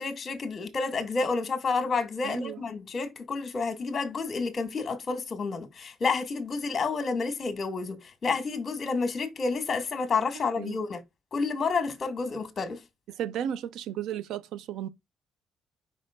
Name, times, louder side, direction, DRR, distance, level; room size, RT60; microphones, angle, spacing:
voice 1, 0.0-11.0 11.3-12.8, left 4 dB, 40° left, 1.8 m, -30 dB
voice 2, 2.2-2.6 10.6-10.8 13.1-14.9, right 10 dB, 85° right, 0.8 m, -34 dB
5.6 x 5.1 x 3.7 m
cardioid pair, 90°, 0 cm